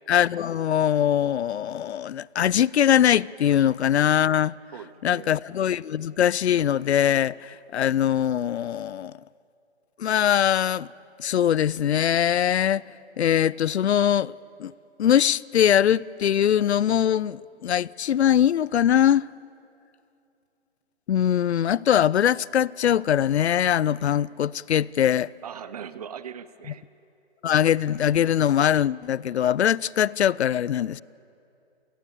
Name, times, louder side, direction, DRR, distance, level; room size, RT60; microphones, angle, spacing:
voice 1, 0.1-4.5 5.0-9.1 10.0-10.9 11.2-12.9 13.2-14.3 14.6-14.7 15.0-19.2 21.1-25.3 27.4-31.0, left 10 dB, 75° left, 0.5 m, -22 dB
voice 2, 4.7-5.4 25.4-26.8, right 8 dB, 35° right, 0.8 m, -40 dB
28.5 x 19.5 x 7.0 m
hypercardioid pair, 160°, 33 cm